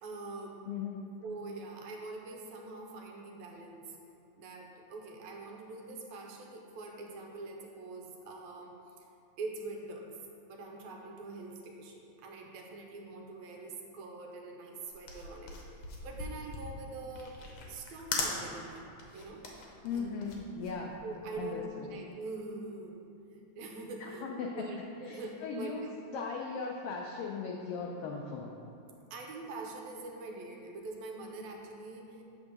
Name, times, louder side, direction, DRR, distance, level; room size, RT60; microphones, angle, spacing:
voice 1, 0.0-0.6 1.2-4.0 4.4-8.8 9.4-10.1 10.5-17.4 17.7-18.8 19.1-19.4 19.9-20.2 21.0-23.0 23.3-25.9 29.1-32.2, right 3 dB, 80° right, 1 dB, 2.1 m, -44 dB
voice 2, 0.7-1.0 19.8-21.0 21.4-21.9 24.0-25.9 26.1-28.5, left 4 dB, 85° left, 0 dB, 1.3 m, -38 dB
sound 1, 14.9-21.6, left 3 dB, 65° left, 1.6 m, -40 dB
8.4 x 3.6 x 6.4 m, 2.6 s
omnidirectional pair, 3.3 m